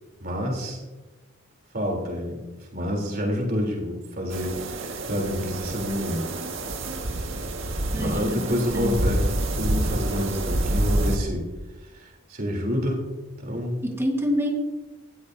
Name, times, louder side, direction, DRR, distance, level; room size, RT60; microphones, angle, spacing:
voice 1, 0.2-0.8 1.7-2.4 2.7-6.2 8.0-9.3 9.6-11.5 11.9-13.0 13.4-13.8, equal, 45° right, 1 dB, 3.4 m, -28 dB
sound 1, 4.3-11.2, right 1 dB, 65° right, 1.7 m, -28 dB
voice 2, 7.9-9.0 13.8-14.5, equal, 10° right, 2 dB, 1.5 m, -27 dB
19.0 x 13.5 x 2.7 m, 1.2 s
head